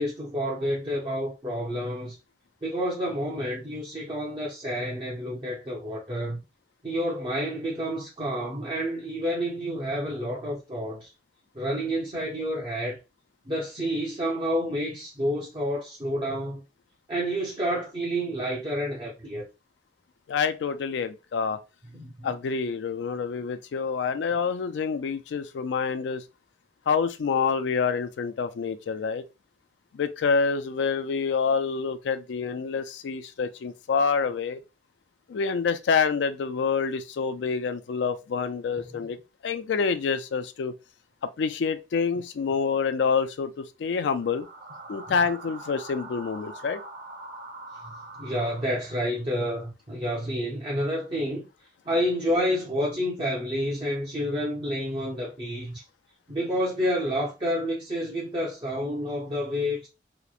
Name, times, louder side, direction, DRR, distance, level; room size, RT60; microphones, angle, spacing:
voice 1, 0.0-2.2 2.6-6.4 6.8-11.1 11.5-13.0 13.5-16.6 17.1-19.5 21.9-22.3 38.9-39.0 47.8-51.5 51.9-55.8 56.3-59.9, equal, 25° right, 0.6 m, -29 dB
voice 2, 20.3-21.6 22.2-26.2 26.9-29.2 29.9-34.6 35.3-39.2 39.4-40.7 41.4-44.5 44.9-46.8, left 5 dB, 75° left, 0.3 m, -27 dB
sound 1, 44.1-49.1, right 2 dB, 65° right, 0.7 m, -43 dB
2.9 x 2.0 x 2.4 m
head